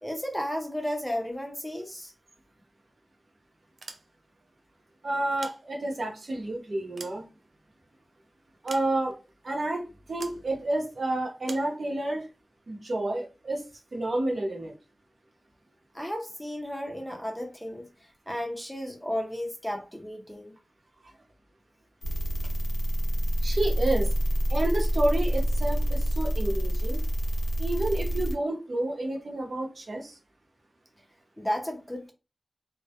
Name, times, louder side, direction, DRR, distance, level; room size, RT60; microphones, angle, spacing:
voice 1, 0.0-2.1 15.9-17.9 18.3-20.5 31.4-32.1, equal, 5° left, 0.5 m, -33 dB
sound 1, 3.7-4.5 5.2-6.2 6.6-7.9 8.7-9.3 10.2-10.5 11.4-11.8, right 3 dB, 75° right, 0.3 m, -45 dB
voice 2, 5.0-7.2 8.6-9.2 9.4-12.2 12.7-13.6 13.9-14.7 23.4-24.1 24.5-27.0 27.6-30.1, right 2 dB, 55° right, 0.7 m, -30 dB
sound 2, 22.0-28.3, equal, 85° left, 0.8 m, -27 dB
2.1 x 2.1 x 2.8 m
wide cardioid pair, 90°, 0 cm